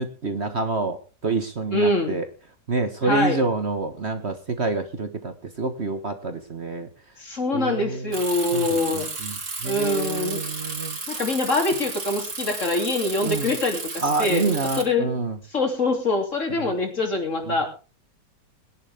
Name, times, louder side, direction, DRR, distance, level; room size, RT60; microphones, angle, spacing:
voice 1, 0.0-2.2 2.7-6.9 7.5-8.1 8.5-11.0 13.2-13.5 14.0-15.4 16.5-16.7 17.5-17.6, right 3 dB, 40° right, 8 dB, 1.6 m, -27 dB
voice 2, 1.7-2.2 3.0-3.4 7.2-9.1 9.6-10.4 11.1-15.2 15.5-17.7, left 2 dB, 45° left, 3 dB, 3.4 m, -24 dB
Bicycle, 8.1-14.8, right 3 dB, 70° right, 3.4 m, -33 dB
21.5 x 10.5 x 3.6 m, 0.35 s
omnidirectional pair, 1.8 m